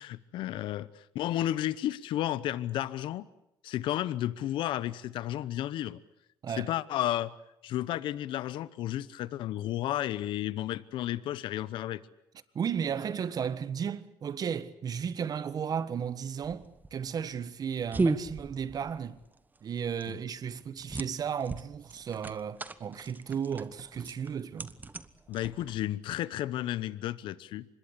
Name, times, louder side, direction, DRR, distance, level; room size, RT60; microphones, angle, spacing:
voice 1, 0.0-3.3 3.6-6.0 6.6-7.3 7.6-12.0 20.1-20.2 25.3-27.7, left 13 dB, 80° left, 0.9 m, -32 dB
voice 2, 12.5-16.6 16.9-19.2 19.6-24.7, right 7 dB, 50° right, 1.5 m, -34 dB
sound 1, 16.4-26.0, right 3 dB, 20° right, 1.3 m, -36 dB
25.0 x 21.0 x 8.4 m
cardioid pair, 95°, 8 cm